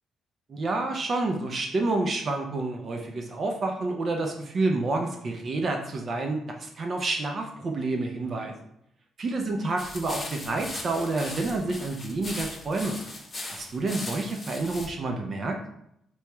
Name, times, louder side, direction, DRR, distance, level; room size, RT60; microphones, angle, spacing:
voice 1, 0.5-8.5 9.2-13.0 13.5-15.6, right 2 dB, 45° right, 3 dB, 0.5 m, -29 dB
sound 1, 9.8-14.9, left 2 dB, 25° left, 0.6 m, -39 dB
4.3 x 2.3 x 2.9 m, 0.75 s
cardioid pair, 90°, 0 cm